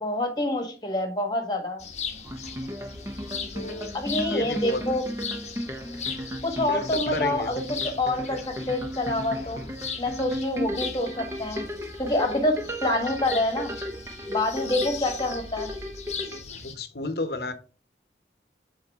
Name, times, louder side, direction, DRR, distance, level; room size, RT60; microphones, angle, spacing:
voice 1, 0.0-1.8 3.9-5.0 6.4-9.7 10.0-11.6 12.0-13.7 14.3-15.7, left 1 dB, 25° left, 1.4 m, -27 dB
sound 1, 1.8-16.8, left 5 dB, 40° left, 0.9 m, -38 dB
sound 2, 2.3-16.4, equal, 15° right, 0.7 m, -35 dB
voice 2, 3.5-3.9 4.2-4.9 6.7-7.5 16.3-17.5, left 2 dB, 65° left, 0.9 m, -32 dB
7.8 x 4.1 x 3.5 m
head